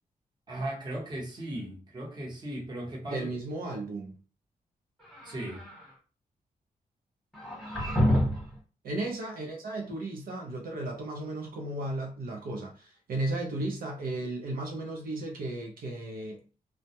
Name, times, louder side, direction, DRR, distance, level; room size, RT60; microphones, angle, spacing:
voice 1, 0.5-3.3 5.2-5.6, right 1 dB, 30° right, 0.8 m, -37 dB
voice 2, 3.1-4.2 8.8-16.4, right 2 dB, 85° right, 0.6 m, -35 dB
sound 1, 5.0-5.9 7.3-8.6, equal, ahead, 1.0 m, -28 dB
2.2 x 2.0 x 2.8 m
wide cardioid pair, 160°, 15 cm